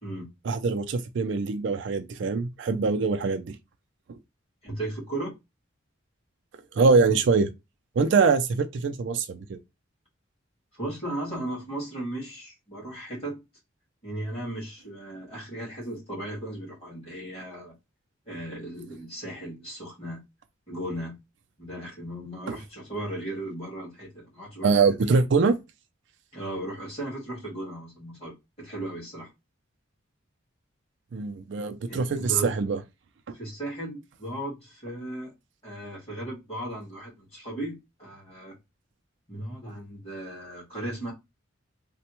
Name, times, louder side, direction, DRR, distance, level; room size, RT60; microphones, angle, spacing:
voice 1, 0.4-3.6 4.1-4.2 6.7-7.5 8.0-9.6 22.5-22.6 24.6-25.5 31.1-32.8, right 4 dB, 60° right, 0.4 m, -23 dB
voice 2, 4.6-5.4 10.7-13.4 14.0-17.8 18.3-20.2 20.7-21.2 21.6-25.2 26.3-29.3 31.9-32.6 33.3-35.3 35.6-38.6 39.3-41.1, right 1 dB, 30° left, 1.9 m, -36 dB
3.3 x 2.1 x 2.9 m
head